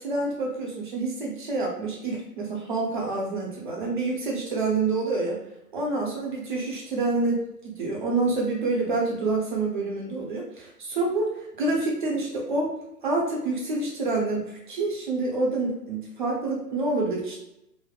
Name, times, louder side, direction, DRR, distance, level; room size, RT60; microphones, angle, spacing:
voice 1, 0.0-5.4 5.7-12.7 13.0-17.4, right 3 dB, 30° right, -2 dB, 0.7 m, -27 dB
3.4 x 2.1 x 2.3 m, 0.84 s
figure-of-eight pair, 125°, 48 cm